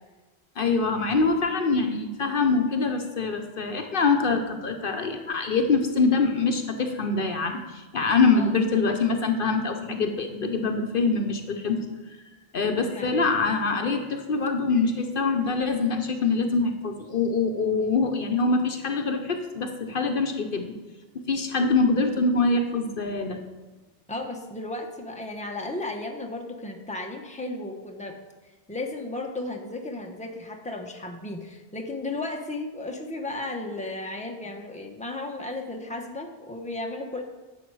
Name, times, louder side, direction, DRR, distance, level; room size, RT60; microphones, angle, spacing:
voice 1, 0.6-11.9 12.5-20.7 21.3-23.4, left 4 dB, 60° left, 5 dB, 1.0 m, -24 dB
voice 2, 24.1-28.2 28.7-37.2, left 2 dB, 5° left, 2 dB, 1.0 m, -34 dB
11.0 x 7.4 x 4.7 m, 1.2 s
omnidirectional pair, 1.0 m